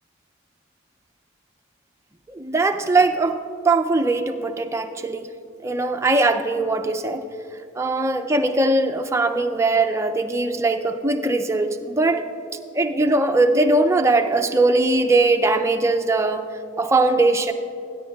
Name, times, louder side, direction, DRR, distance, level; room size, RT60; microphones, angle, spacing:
voice 1, 2.3-5.3 5.6-7.2 7.8-12.3 12.7-16.5 16.8-17.5, right 2 dB, 15° right, 6 dB, 0.3 m, -20 dB
17.5 x 9.8 x 2.3 m, 2.6 s
head